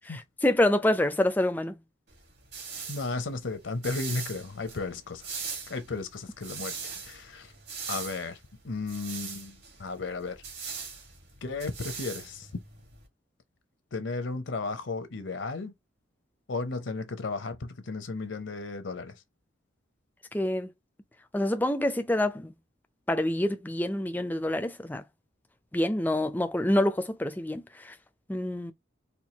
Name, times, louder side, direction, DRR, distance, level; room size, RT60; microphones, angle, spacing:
voice 1, 0.4-1.8 20.3-20.7 21.3-22.5 23.1-25.0 25.7-27.9 28.3-28.7, left 1 dB, 10° left, 0.4 m, -26 dB
sound 1, 2.1-13.1, right 6 dB, 55° right, 1.7 m, -41 dB
voice 2, 2.9-5.4 5.7-7.5 7.9-8.4 8.6-10.4 11.4-12.5 13.9-15.7 16.5-19.1, left 3 dB, 70° left, 0.7 m, -34 dB
4.4 x 2.3 x 2.8 m
head